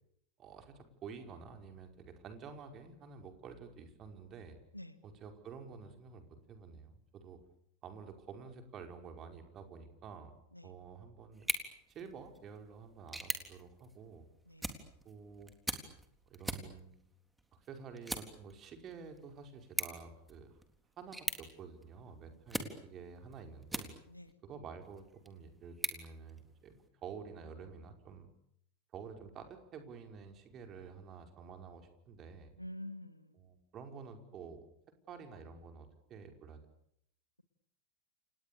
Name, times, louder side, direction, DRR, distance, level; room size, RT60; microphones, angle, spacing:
voice 1, 0.4-4.6 5.0-7.4 7.8-10.3 10.6-11.5 11.9-14.3 15.1-15.5 16.3-16.9 17.5-20.6 21.0-23.9 24.4-28.3 28.9-32.5 33.3-34.6 35.1-36.6, right 6 dB, 30° right, 5 dB, 5.2 m, -50 dB
sound 1, 11.3-24.3 24.8-26.9, right 1 dB, 5° right, 3.7 m, -44 dB
voice 2, 32.6-33.4, left 1 dB, 90° left, 12 dB, 2.2 m, -47 dB
29.0 x 29.0 x 7.0 m, 0.72 s
figure-of-eight pair, 90°, 0 cm